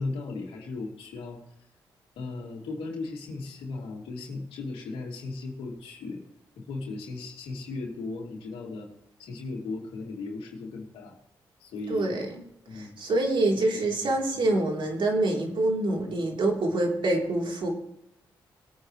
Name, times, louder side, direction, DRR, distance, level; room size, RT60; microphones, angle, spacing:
voice 1, 0.0-1.4 2.1-6.2 6.6-8.9 9.2-11.2 11.6-12.3 12.7-13.0 13.6-14.1 14.4-14.5, left 3 dB, 90° left, -1 dB, 2.9 m, -37 dB
voice 2, 11.9-12.3 12.7-17.7, right 2 dB, 65° right, 0 dB, 3.7 m, -26 dB
20.5 x 9.3 x 3.3 m, 0.76 s
supercardioid pair, 50°, 9 cm